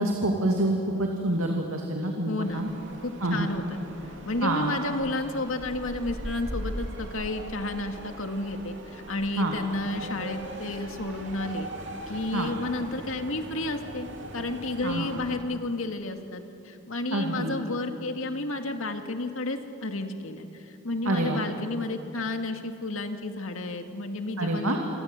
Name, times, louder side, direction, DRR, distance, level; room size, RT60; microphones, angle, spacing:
voice 1, 0.0-2.7 3.2-3.5 4.4-4.7 9.4-9.5 12.3-12.5 14.8-15.1 17.1-17.5 21.1-21.4 24.4-24.8, right 1 dB, 90° right, 1 dB, 2.6 m, -27 dB
voice 2, 2.3-2.7 3.0-3.8 4.2-11.7 12.1-24.8, left 2 dB, 75° left, 5 dB, 2.1 m, -32 dB
sound 1, 2.4-15.3, right 1 dB, 55° right, 3.0 m, -40 dB
27.5 x 25.5 x 8.3 m, 2.8 s
head